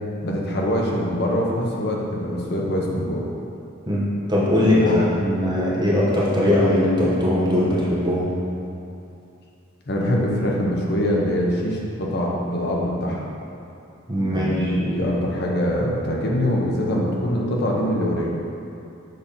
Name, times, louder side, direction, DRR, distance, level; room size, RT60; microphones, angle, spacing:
voice 1, 0.2-3.3 4.5-5.1 9.9-13.3 14.3-18.3, equal, 50° left, -2 dB, 0.8 m, -23 dB
voice 2, 3.9-8.3 14.1-14.7, left 1 dB, 20° right, -7 dB, 0.8 m, -20 dB
6.6 x 2.9 x 5.2 m, 2.7 s
head